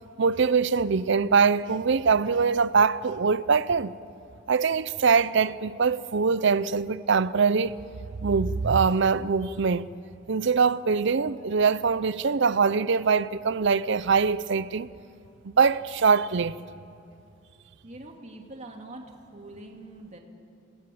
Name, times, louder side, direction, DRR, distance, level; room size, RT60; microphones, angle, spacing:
voice 1, 0.2-3.9 4.5-7.8 8.2-9.9 10.3-14.9 15.6-16.6, right 5 dB, 60° right, 0.6 m, -23 dB
voice 2, 17.8-20.2, right 2 dB, 35° right, 2.7 m, -44 dB
28.5 x 18.5 x 8.6 m
head